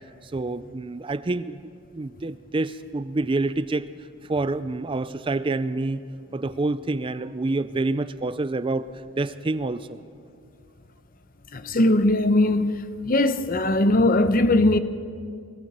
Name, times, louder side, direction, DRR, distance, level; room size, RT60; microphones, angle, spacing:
voice 1, 0.2-1.6 1.9-3.9 4.3-6.0 6.3-8.9 9.2-10.0, right 2 dB, 25° right, 0.4 m, -27 dB
voice 2, 11.5-12.8 13.1-14.8, left 1 dB, 40° left, 0.8 m, -20 dB
22.0 x 15.5 x 7.5 m
head